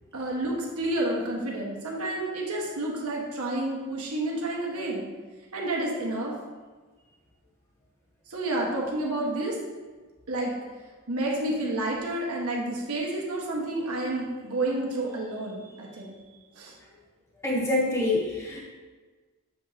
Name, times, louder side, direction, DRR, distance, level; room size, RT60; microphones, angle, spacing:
voice 1, 0.1-5.0 5.5-6.3 8.3-9.6 10.3-10.5 11.1-16.2 16.5-16.7, right 1 dB, 90° right, -2 dB, 1.4 m, -30 dB
voice 2, 17.4-18.6, left 2 dB, 15° left, -4 dB, 0.9 m, -26 dB
7.7 x 5.0 x 2.8 m, 1.4 s
head